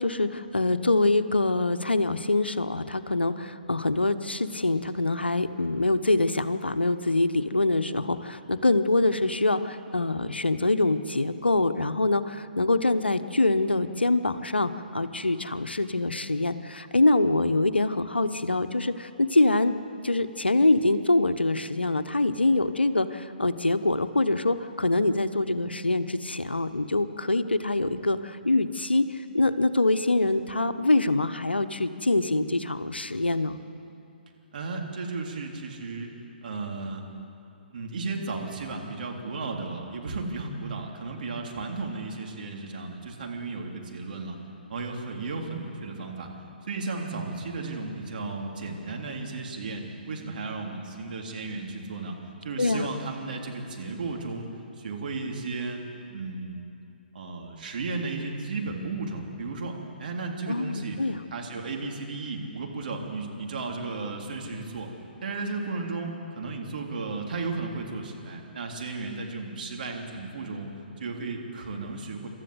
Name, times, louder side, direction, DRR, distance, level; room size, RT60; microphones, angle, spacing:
voice 1, 0.0-19.7 20.0-29.1 29.3-33.6 52.6-52.9 60.5-61.2, left 2 dB, 90° left, 11 dB, 1.0 m, -24 dB
voice 2, 34.5-36.1 36.4-37.0 37.7-44.4 44.7-46.3 46.7-52.2 52.4-54.5 54.8-55.8 56.1-56.7 57.1-59.7 60.0-61.0 61.3-64.9 65.2-70.7 71.0-72.3, right 3 dB, 55° right, 1 dB, 3.4 m, -34 dB
27.0 x 13.5 x 8.0 m, 2.7 s
figure-of-eight pair, 130°, 6 cm